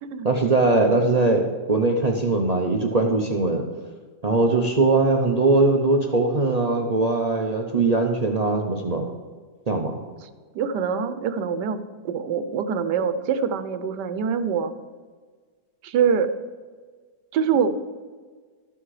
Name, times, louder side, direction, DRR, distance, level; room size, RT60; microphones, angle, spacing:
voice 1, 0.2-3.6 4.2-9.1 9.7-10.0, right 3 dB, 45° right, 2 dB, 0.5 m, -21 dB
voice 2, 10.5-14.7 15.8-16.3 17.3-17.7, right 7 dB, 85° right, 11 dB, 1.3 m, -24 dB
13.0 x 6.1 x 4.8 m, 1.5 s
omnidirectional pair, 1.8 m